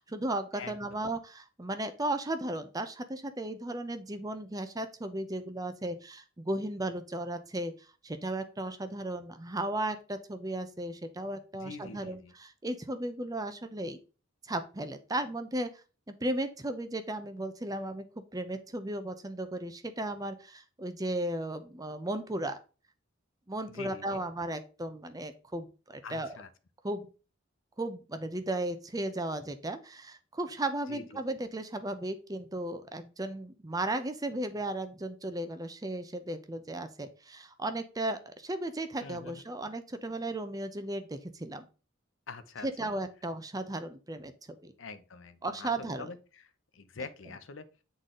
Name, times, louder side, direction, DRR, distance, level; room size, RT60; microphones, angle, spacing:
voice 1, 0.0-7.7 8.0-14.0 14.4-15.7 16.1-18.0 18.3-22.6 23.5-26.3 26.8-27.1 27.8-41.7 42.6-44.3 44.6-44.7 45.4-46.1, right 1 dB, 20° right, 0.6 m, -35 dB
voice 2, 0.5-1.0 11.6-12.3 23.7-24.2 26.0-26.5 30.9-31.2 39.0-39.4 42.3-42.7 44.8-46.2 46.7-47.6, left 4 dB, 70° left, 0.7 m, -45 dB
8.3 x 4.0 x 3.7 m
head